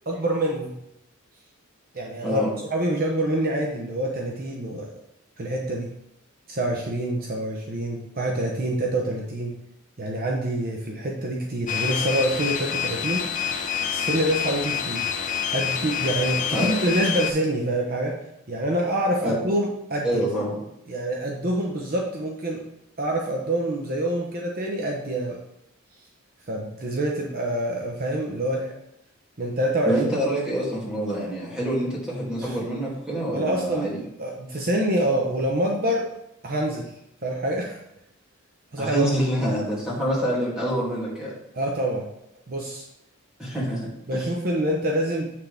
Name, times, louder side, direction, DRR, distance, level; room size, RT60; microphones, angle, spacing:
voice 1, 0.1-0.8 1.9-2.4 2.7-4.9 5.4-5.9 6.5-9.5 10.0-13.3 13.9-15.1 15.5-18.1 18.5-20.1 20.9-22.6 23.0-25.4 26.5-28.7 29.4-30.0 32.4-32.6 33.3-36.0 36.4-36.9 37.2-37.8 38.7-39.1 41.5-42.1 42.5-42.9 44.1-45.3, right 1 dB, 45° right, 0 dB, 0.8 m, -26 dB
sound 1, 11.7-17.3, left 8 dB, 35° left, 0.6 m, -27 dB
voice 2, 20.0-20.6 29.8-34.0 38.8-41.3 43.4-44.3, equal, 5° right, -7 dB, 2.6 m, -26 dB
7.6 x 6.0 x 3.4 m, 0.80 s
head